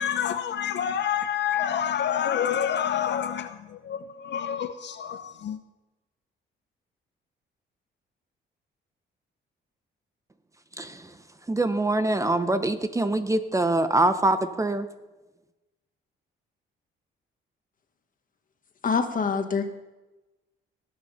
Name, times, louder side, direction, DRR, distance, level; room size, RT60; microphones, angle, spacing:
voice 1, 0.0-5.6, left 9 dB, 60° left, 0.7 m, -28 dB
voice 2, 10.8-11.1 11.5-14.9, right 2 dB, 15° right, 0.8 m, -24 dB
voice 3, 18.8-19.7, left 5 dB, 45° left, 1.6 m, -25 dB
19.0 x 6.4 x 5.7 m
cardioid pair, 90°, 20 cm